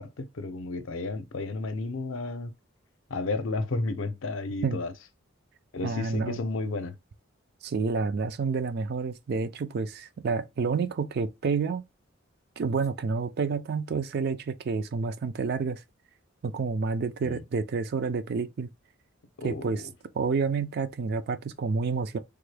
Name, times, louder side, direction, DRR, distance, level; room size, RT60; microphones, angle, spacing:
voice 1, 0.0-2.5 3.1-4.9 5.7-7.0 17.2-17.4 19.4-19.7, left 3 dB, 70° left, 0.6 m, -32 dB
voice 2, 5.8-6.4 7.6-11.8 12.6-15.8 16.4-18.7 19.4-19.8 20.1-22.2, right 4 dB, 50° right, 0.4 m, -29 dB
3.5 x 2.1 x 3.2 m
head